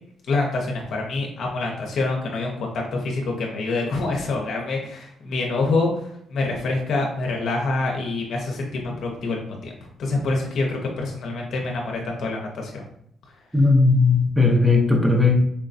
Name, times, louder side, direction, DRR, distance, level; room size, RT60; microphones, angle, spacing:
voice 1, 0.3-9.7 10.0-12.8, left 3 dB, 70° left, 0 dB, 0.7 m, -26 dB
voice 2, 13.5-15.4, left 3 dB, 5° right, 1 dB, 0.8 m, -17 dB
4.4 x 2.2 x 2.6 m, 0.68 s
cardioid pair, 90°, 0 cm